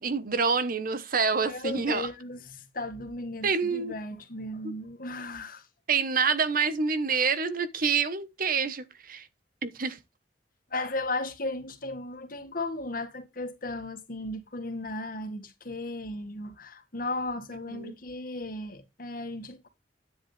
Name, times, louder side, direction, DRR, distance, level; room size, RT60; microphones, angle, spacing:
voice 1, 0.0-2.1 3.4-3.9 4.6-4.7 5.9-9.3 9.6-10.0 17.7-17.9, right 5 dB, 55° right, 1.2 m, -27 dB
voice 2, 1.3-5.7 10.7-19.7, left 2 dB, 55° left, 2.0 m, -35 dB
10.0 x 8.0 x 3.4 m
head